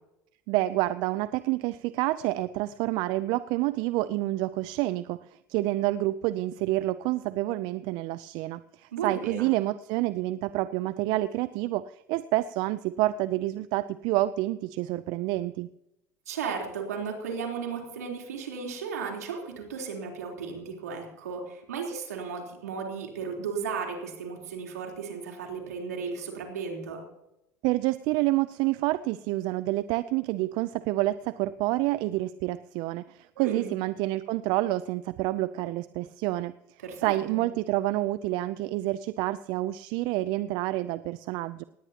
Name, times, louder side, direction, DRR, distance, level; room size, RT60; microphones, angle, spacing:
voice 1, 0.5-15.7 27.6-36.5 37.0-41.6, right 17 dB, 65° right, 15 dB, 0.5 m, -28 dB
voice 2, 8.9-9.5 16.3-27.0 33.4-33.8 36.8-37.4, right 5 dB, 90° right, 1 dB, 3.7 m, -35 dB
19.0 x 17.5 x 2.9 m, 0.87 s
hypercardioid pair, 75°, 8 cm